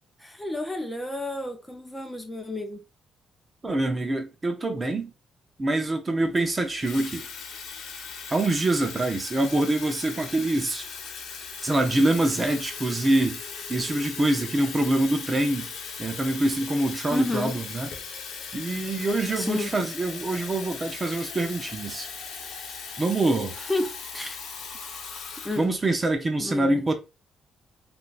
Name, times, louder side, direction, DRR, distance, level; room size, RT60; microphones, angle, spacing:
voice 1, 0.2-2.8 17.1-17.6 19.3-19.7 23.6-24.4 25.4-25.7 26.4-26.8, left 2 dB, 10° left, 0.6 m, -31 dB
voice 2, 3.6-5.1 5.6-7.3 8.3-10.9 11.6-13.4 13.7-15.7 16.0-17.9 18.5-22.1 23.0-23.6 25.6-26.9, right 2 dB, 25° right, 0.6 m, -25 dB
Water tap faucet / Fill (with liquid), 6.3-26.1, left 5 dB, 70° left, 0.8 m, -38 dB
3.6 x 2.5 x 2.4 m
cardioid pair, 90°, 0 cm